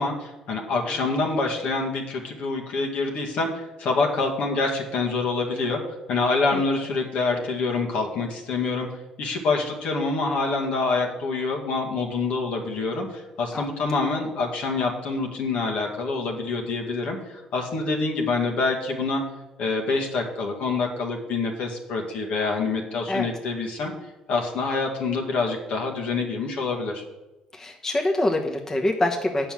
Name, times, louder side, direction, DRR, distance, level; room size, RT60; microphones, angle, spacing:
voice 1, 0.0-5.8 6.1-8.9 9.2-19.2 19.6-23.9 24.3-27.0, left 3 dB, 70° left, 1 dB, 1.9 m, -26 dB
voice 2, 13.5-13.8 23.1-23.3 27.5-29.5, left 1 dB, 25° left, 2 dB, 1.1 m, -25 dB
7.9 x 5.8 x 7.5 m, 1.1 s
cardioid pair, 90°, 2 cm